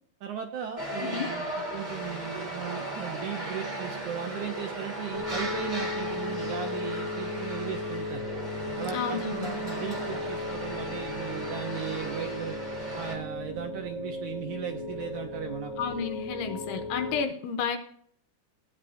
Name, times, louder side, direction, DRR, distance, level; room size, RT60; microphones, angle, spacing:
voice 1, 0.2-8.3 8.8-12.6 12.9-15.7, right 8 dB, 80° right, 3 dB, 1.7 m, -37 dB
sound 1, 0.8-13.1, right 1 dB, 30° right, 0.7 m, -36 dB
sound 2, 5.1-17.2, left 2 dB, 55° left, 1.0 m, -36 dB
voice 2, 8.9-9.5 15.8-17.8, left 6 dB, 75° left, 6 dB, 2.3 m, -31 dB
15.0 x 8.8 x 2.6 m, 0.63 s
omnidirectional pair, 4.5 m